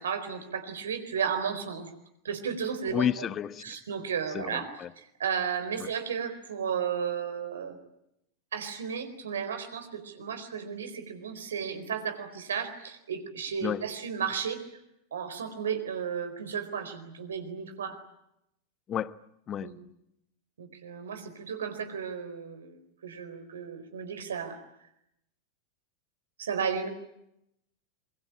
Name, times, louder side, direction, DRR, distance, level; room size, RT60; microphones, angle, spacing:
voice 1, 0.0-1.9 2.2-3.3 3.6-7.8 8.5-14.6 15.1-18.0 19.6-19.8 20.6-24.6 26.4-26.9, right 7 dB, 70° right, 4.3 m, -34 dB
voice 2, 2.9-3.6 4.3-4.6 13.6-13.8 18.9-19.1 19.5-19.7, left 9 dB, 30° left, 1.1 m, -30 dB
27.5 x 23.0 x 8.8 m
figure-of-eight pair, 90°, 0 cm